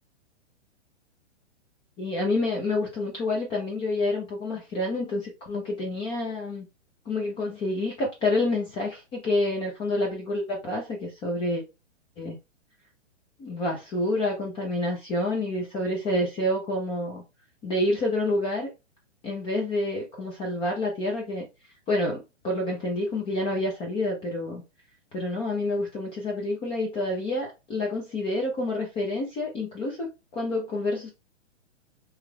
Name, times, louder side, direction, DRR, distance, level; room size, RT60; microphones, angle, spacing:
voice 1, 2.0-6.7 7.1-11.6 12.2-12.4 13.4-17.2 17.6-18.7 19.2-21.4 21.9-24.6 25.1-30.1 30.3-31.1, left 2 dB, 15° left, 0.5 m, -28 dB
3.1 x 3.0 x 2.2 m
hypercardioid pair, 130°, 37 cm